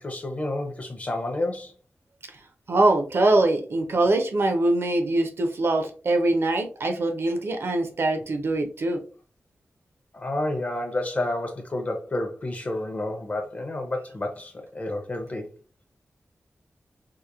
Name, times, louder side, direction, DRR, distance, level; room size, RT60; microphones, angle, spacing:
voice 1, 0.0-1.7 10.1-15.5, left 1 dB, 30° left, 0.5 m, -30 dB
voice 2, 2.7-9.0, right 2 dB, 60° right, 0.4 m, -23 dB
2.8 x 2.0 x 2.3 m
wide cardioid pair, 140°, 5 cm